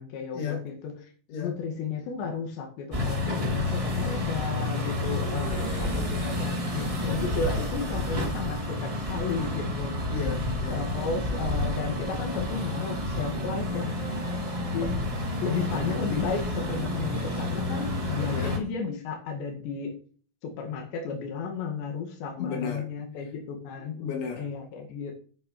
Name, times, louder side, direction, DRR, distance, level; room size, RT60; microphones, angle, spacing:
voice 1, 0.0-1.1 1.4-10.0 10.7-14.0 14.7-15.0 15.4-20.0 20.4-24.0 24.4-25.2, left 5 dB, 75° left, 2 dB, 4.3 m, -33 dB
sound 1, 2.9-18.6, left 1 dB, 10° right, 1.7 m, -30 dB
voice 2, 5.3-6.2 10.1-10.8 18.3-18.5 22.4-22.8 23.9-24.5, left 6 dB, 90° left, 2 dB, 5.4 m, -34 dB
9.7 x 9.1 x 6.9 m, 0.42 s
omnidirectional pair, 5.1 m